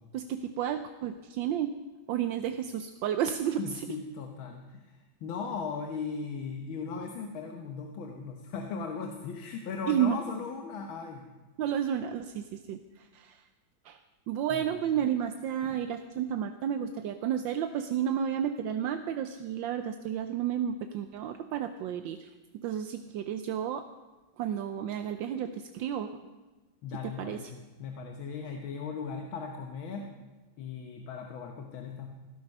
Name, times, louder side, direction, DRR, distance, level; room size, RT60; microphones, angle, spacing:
voice 1, 0.1-1.8 2.1-3.9 9.9-10.2 11.6-13.4 13.8-14.0 14.3-23.9 24.4-26.2 27.2-27.4, right 9 dB, 75° right, 8 dB, 1.3 m, -32 dB
voice 2, 3.6-11.3 14.5-14.6 26.8-30.1 30.6-32.1, left 5 dB, 90° left, 3 dB, 1.9 m, -38 dB
16.5 x 12.5 x 5.4 m, 1.2 s
omnidirectional pair, 2.1 m